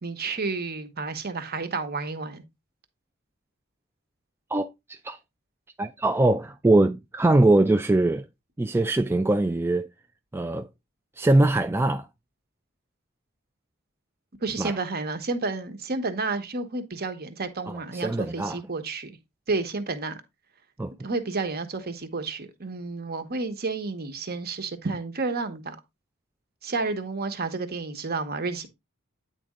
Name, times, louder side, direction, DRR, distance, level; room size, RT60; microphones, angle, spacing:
voice 1, 0.0-2.4 14.4-19.2 19.5-20.2 21.0-25.8 26.6-28.7, right 3 dB, 45° right, 1.2 m, -31 dB
voice 2, 4.5-5.2 5.8-8.2 8.6-9.9 10.3-10.7 11.2-12.1 14.6-14.7 17.9-18.6 20.8-20.9, right 2 dB, 10° right, 0.3 m, -22 dB
9.3 x 4.2 x 3.7 m
head